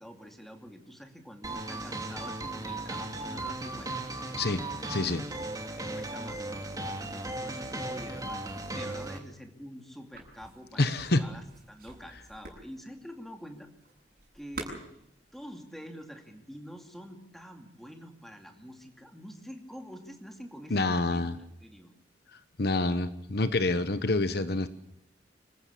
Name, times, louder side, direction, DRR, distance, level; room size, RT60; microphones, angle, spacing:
voice 1, 0.0-3.9 5.8-6.5 7.0-13.7 14.3-14.8 15.3-21.9, equal, ahead, 4 dB, 2.6 m, -46 dB
sound 1, 1.4-9.2, right 2 dB, 20° right, 2.6 m, -36 dB
voice 2, 4.9-5.2 10.8-11.2 20.7-21.4 22.6-24.7, left 2 dB, 60° left, 12 dB, 1.1 m, -27 dB
sound 2, 10.1-15.4, right 2 dB, 50° right, 7.8 m, -46 dB
26.0 x 15.0 x 8.5 m, 0.80 s
head